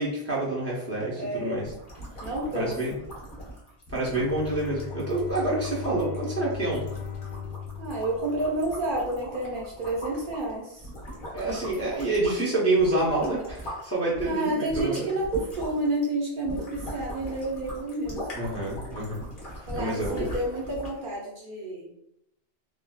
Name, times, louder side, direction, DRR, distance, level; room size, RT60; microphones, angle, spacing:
voice 1, 0.0-1.7 2.5-2.9 3.9-6.8 11.3-15.1 18.3-19.2 19.6-20.3, right 2 dB, 20° left, -5 dB, 0.5 m, -27 dB
voice 2, 1.2-1.6 2.2-2.7 7.8-10.9 14.2-18.3 19.7-21.9, right 1 dB, 60° right, -3 dB, 0.8 m, -30 dB
sound 1, 1.6-13.8 14.1-21.0, equal, 55° left, 1.1 m, -40 dB
Bowed string instrument, 4.1-9.0, left 7 dB, 85° left, 0.8 m, -38 dB
3.3 x 2.2 x 2.2 m, 0.79 s
omnidirectional pair, 1.1 m